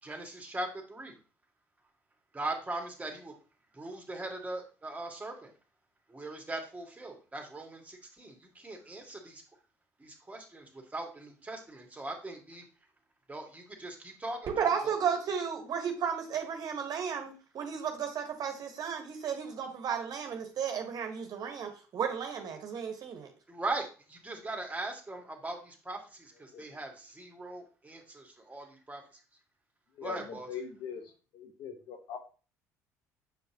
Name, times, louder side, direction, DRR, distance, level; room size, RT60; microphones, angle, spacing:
voice 1, 0.0-1.2 2.3-3.3 3.7-5.5 6.1-9.4 10.0-12.6 13.3-14.9 23.5-29.0 30.0-30.5, right 2 dB, 15° right, 2.2 m, -40 dB
voice 2, 14.6-23.3, right 7 dB, 50° right, 1.6 m, -34 dB
voice 3, 30.0-31.0 31.3-32.2, left 7 dB, 60° left, 1.2 m, -41 dB
7.5 x 5.1 x 3.0 m
hypercardioid pair, 55°, 8 cm